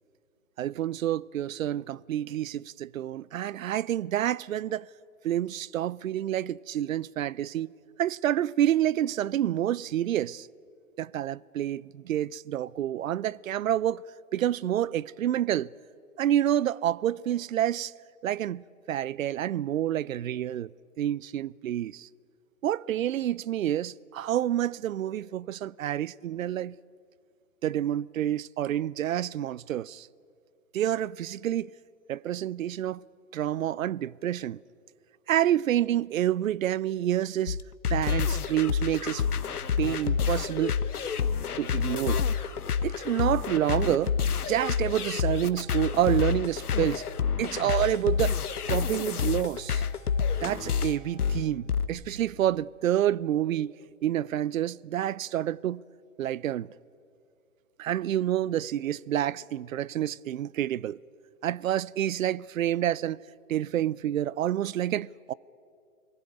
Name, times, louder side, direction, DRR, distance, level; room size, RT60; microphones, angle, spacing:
voice 1, 0.6-4.9 5.2-7.7 8.0-10.5 11.0-14.0 14.3-15.7 16.2-17.9 18.2-20.7 21.0-22.1 22.6-26.8 27.6-30.1 30.7-31.7 32.1-33.0 33.3-34.6 35.3-37.6 37.9-39.5 39.8-40.7 41.6-42.2 42.8-44.2 44.5-47.0 47.4-48.4 48.7-49.8 50.4-53.8 54.0-55.8 56.2-56.7 57.8-61.0 61.4-63.2 63.5-65.3, right 11 dB, 65° right, 0.5 m, -28 dB
sound 1, 37.5-51.9, left 6 dB, 90° left, 1.2 m, -28 dB
Wind instrument woodwind instrument, 45.5-51.5, right 1 dB, 30° left, 3.3 m, -57 dB
22.0 x 15.0 x 9.0 m
hypercardioid pair, 160°, 44 cm